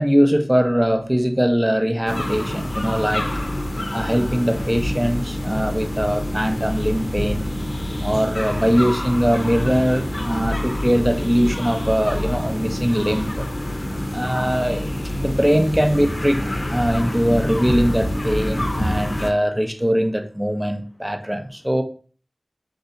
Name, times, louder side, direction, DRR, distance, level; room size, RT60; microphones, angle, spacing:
voice 1, 0.0-3.3 3.9-7.5 8.0-13.4 14.1-14.9 15.1-21.8, equal, 10° right, 0.5 m, -21 dB
sound 1, 2.1-19.3, left 1 dB, 60° left, 0.5 m, -26 dB
3.3 x 2.6 x 3.9 m
wide cardioid pair, 50°, 0 cm